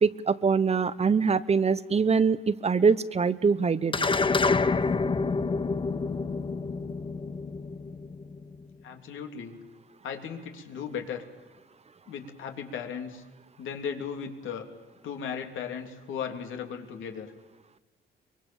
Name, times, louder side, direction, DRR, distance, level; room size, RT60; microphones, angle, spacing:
voice 1, 0.0-3.9, right 5 dB, 30° right, 15 dB, 0.9 m, -23 dB
sound 1, 3.9-8.6, left 4 dB, 25° left, 1.0 m, -27 dB
voice 2, 8.8-9.6 10.0-11.2 12.1-13.2 13.6-14.7 15.0-17.3, left 7 dB, 80° left, 4 dB, 3.2 m, -36 dB
24.0 x 22.5 x 7.2 m, 1.2 s
cardioid pair, 90°, 20 cm